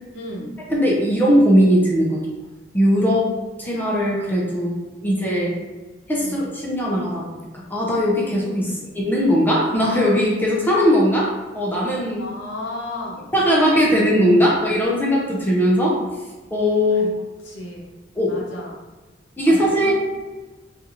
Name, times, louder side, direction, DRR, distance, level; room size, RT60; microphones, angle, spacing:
voice 1, 0.1-0.6 5.0-5.1 6.2-6.4 8.6-8.9 12.2-13.3 14.3-14.5 17.0-17.1 17.4-17.9 18.3-18.8 19.4-19.9, left 1 dB, 70° left, -2 dB, 0.7 m, -34 dB
voice 2, 0.7-2.2 2.7-3.3 3.6-4.8 5.0-5.5 6.1-7.2 7.5-12.2 13.3-16.0 16.5-17.1 18.1-18.3 19.4-19.9, equal, 10° left, -4 dB, 0.5 m, -19 dB
2.8 x 2.4 x 2.6 m, 1.2 s
head